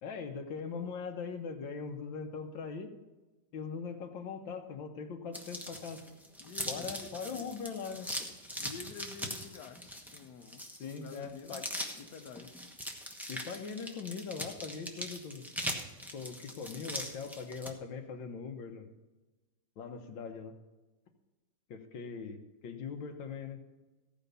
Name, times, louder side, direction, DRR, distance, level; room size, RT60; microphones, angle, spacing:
voice 1, 0.0-2.9 3.5-6.1 6.7-8.2 10.8-11.7 13.3-15.5 16.1-18.9 19.8-20.5 21.7-23.6, left 5 dB, 85° left, 5 dB, 1.8 m, -41 dB
sound 1, 5.3-17.7, equal, ahead, 0.8 m, -41 dB
voice 2, 6.4-7.5 8.6-11.6 11.9-12.5, left 5 dB, 65° left, 6 dB, 1.3 m, -49 dB
15.0 x 5.1 x 6.8 m, 1.1 s
omnidirectional pair, 2.0 m